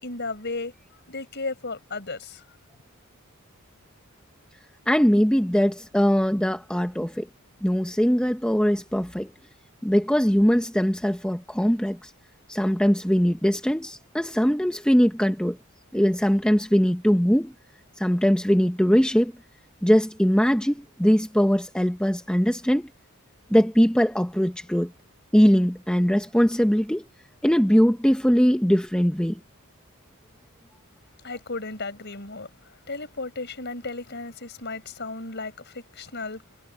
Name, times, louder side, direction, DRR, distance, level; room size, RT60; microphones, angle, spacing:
voice 1, 0.0-0.7 1.1-2.4 31.2-36.4, left 3 dB, 50° left, 5.6 m, -34 dB
voice 2, 4.9-7.3 7.6-9.3 9.8-12.1 12.5-15.6 15.9-17.5 18.0-19.3 19.8-22.9 23.5-24.9 25.3-27.0 27.4-29.4, equal, 5° left, 1.0 m, -21 dB
head